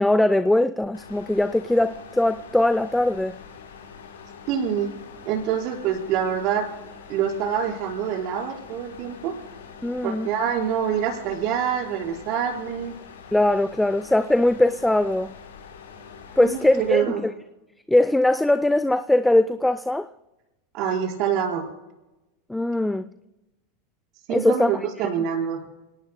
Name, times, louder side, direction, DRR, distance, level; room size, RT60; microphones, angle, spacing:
voice 1, 0.0-3.4 9.8-10.3 13.3-15.3 16.4-17.3 17.9-20.1 22.5-23.1 24.3-24.7, left 1 dB, 5° left, 0.6 m, -21 dB
sound 1, 0.9-17.0, left 6 dB, 80° left, 3.5 m, -44 dB
voice 2, 4.5-4.9 5.2-6.7 7.1-9.3 10.0-13.0 16.4-17.2 20.7-21.7 24.3-25.6, right 8 dB, 55° right, 5.0 m, -26 dB
29.0 x 18.5 x 2.2 m
hypercardioid pair, 90°, 0 cm